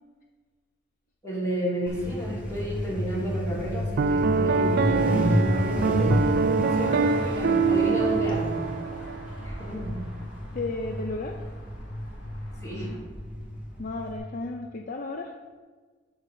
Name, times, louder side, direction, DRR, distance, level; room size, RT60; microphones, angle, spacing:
voice 1, 1.2-8.6 9.4-10.1 12.6-13.0, equal, 15° left, -6 dB, 2.4 m, -31 dB
Truck, 1.9-14.2, equal, 5° right, 1.3 m, -31 dB
Piano, 4.0-9.3, right 4 dB, 55° right, 0.3 m, -24 dB
sound 1, 6.6-13.0, left 1 dB, 80° left, 2.0 m, -48 dB
voice 2, 10.5-11.5 13.8-15.4, left 2 dB, 45° left, 3 dB, 0.5 m, -33 dB
8.0 x 4.0 x 6.3 m, 1.4 s
head